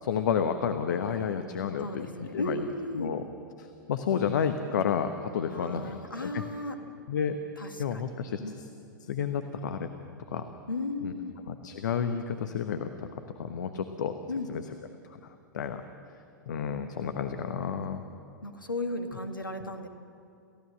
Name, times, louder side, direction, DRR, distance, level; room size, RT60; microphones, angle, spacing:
voice 1, 0.0-2.1 2.3-2.6 3.0-3.2 3.6-6.4 7.1-7.4 7.8-8.4 9.0-9.9 10.3-10.4 11.0-11.1 11.5-13.1 13.4-14.2 14.5-14.6 15.5-15.8 16.5-18.0, left 7 dB, 60° left, 8 dB, 1.2 m, -30 dB
voice 2, 1.8-3.1 5.5-6.8 7.6-8.6 10.7-11.4 14.3-14.5 18.4-19.9, left 2 dB, 85° left, 6 dB, 1.8 m, -35 dB
29.0 x 15.5 x 7.6 m, 2.5 s
figure-of-eight pair, 95°, 11 cm